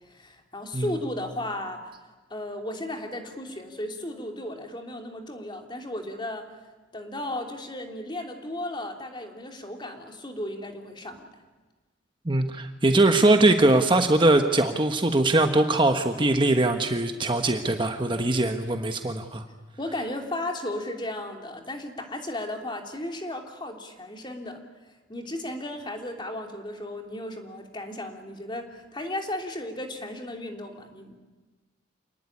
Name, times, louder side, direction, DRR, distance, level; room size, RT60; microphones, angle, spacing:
voice 1, 0.0-1.9 2.3-6.4 6.9-11.3 19.8-24.6 25.1-31.1, left 1 dB, 25° left, 3 dB, 3.1 m, -35 dB
voice 2, 12.2-19.4, right 2 dB, 25° right, 6 dB, 1.3 m, -21 dB
28.5 x 19.5 x 10.0 m, 1.3 s
head